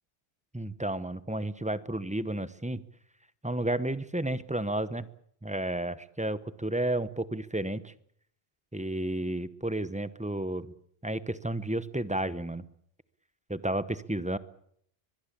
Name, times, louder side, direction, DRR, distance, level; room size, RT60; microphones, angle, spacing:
voice 1, 0.5-2.8 3.4-5.1 5.4-7.9 8.7-10.7 11.0-12.6 13.5-14.4, right 1 dB, 5° right, 15 dB, 0.9 m, -32 dB
24.0 x 21.0 x 8.6 m, 0.68 s
omnidirectional pair, 1.1 m